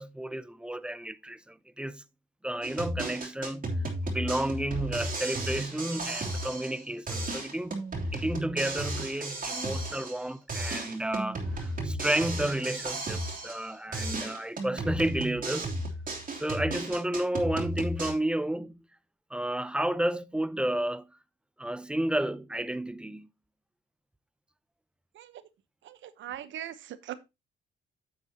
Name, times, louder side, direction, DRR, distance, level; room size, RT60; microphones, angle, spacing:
voice 1, 0.0-2.0 2.4-3.8 4.1-7.8 8.1-15.7 16.3-18.8 19.3-21.1 21.6-23.3, right 1 dB, 5° right, 0.5 m, -31 dB
sound 1, 2.6-6.8 7.1-10.2 10.5-13.7 13.9-18.1, right 1 dB, 40° right, 2.9 m, -34 dB
voice 2, 25.9-27.1, right 12 dB, 75° right, 0.9 m, -40 dB
9.4 x 7.7 x 2.8 m
cardioid pair, 90°, 20 cm